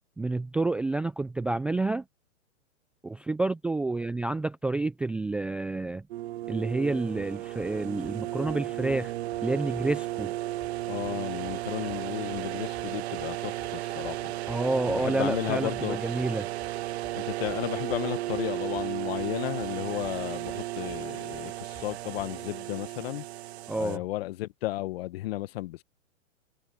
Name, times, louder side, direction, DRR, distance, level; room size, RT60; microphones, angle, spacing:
voice 1, 0.2-2.0 3.0-6.0 6.5-9.1 9.4-10.3 14.5-16.5 23.7-24.0, right 2 dB, 5° right, 0.5 m, -29 dB
sound 1, 6.1-24.0, right 15 dB, 55° right, 0.6 m, -34 dB
sound 2, 7.2-22.5, left 7 dB, 15° left, 3.8 m, -56 dB
voice 2, 10.9-14.3 14.9-16.0 17.1-23.2 23.8-25.8, left 16 dB, 50° left, 1.3 m, -34 dB
hypercardioid pair, 135°, 39 cm